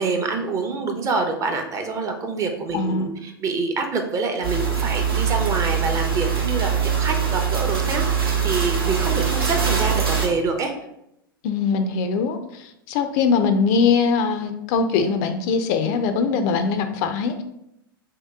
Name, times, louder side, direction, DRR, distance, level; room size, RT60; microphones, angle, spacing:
voice 1, 0.0-6.7 7.0-10.7, right 4 dB, 25° right, 4 dB, 0.6 m, -26 dB
voice 2, 2.7-3.1 11.4-17.4, left 5 dB, 50° left, 8 dB, 0.4 m, -22 dB
sound 1, 4.4-10.3, right 7 dB, 85° right, 0.9 m, -22 dB
3.1 x 2.8 x 3.5 m, 0.81 s
hypercardioid pair, 100°, 12 cm